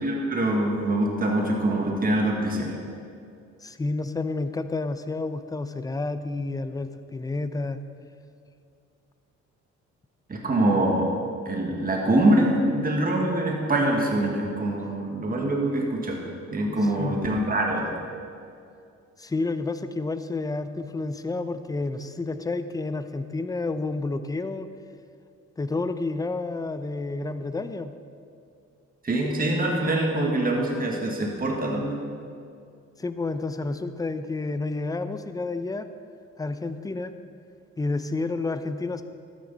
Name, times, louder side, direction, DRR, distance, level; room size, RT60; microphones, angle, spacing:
voice 1, 0.0-2.7 10.3-11.1 11.4-16.2 16.5-17.9 29.0-32.0, right 1 dB, 30° right, 0 dB, 1.6 m, -24 dB
voice 2, 3.6-7.8 17.0-17.2 19.2-24.7 25.6-27.9 33.0-35.9 36.4-37.1 37.8-39.0, left 3 dB, 10° left, 10 dB, 0.5 m, -30 dB
12.5 x 9.5 x 4.0 m, 2.4 s
cardioid pair, 90°, 30 cm